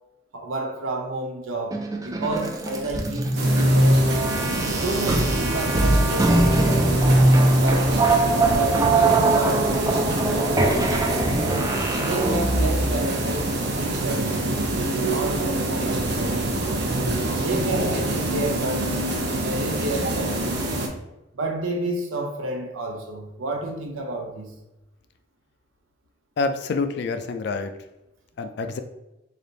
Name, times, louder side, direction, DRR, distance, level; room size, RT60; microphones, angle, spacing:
voice 1, 0.3-4.0 4.8-7.3 7.5-8.1 8.5-11.0 11.9-13.5 13.8-14.4 14.7-16.5 17.4-19.0 19.4-20.6 21.3-24.5, right 2 dB, 90° right, 0.7 m, -30 dB
sound 1, 1.7-13.0, right 2 dB, 15° right, 0.3 m, -21 dB
sound 2, 3.3-20.9, right 2 dB, 55° right, 0.7 m, -26 dB
voice 2, 26.4-27.7 28.4-28.8, left 4 dB, 55° left, 0.3 m, -27 dB
3.3 x 2.6 x 3.9 m
head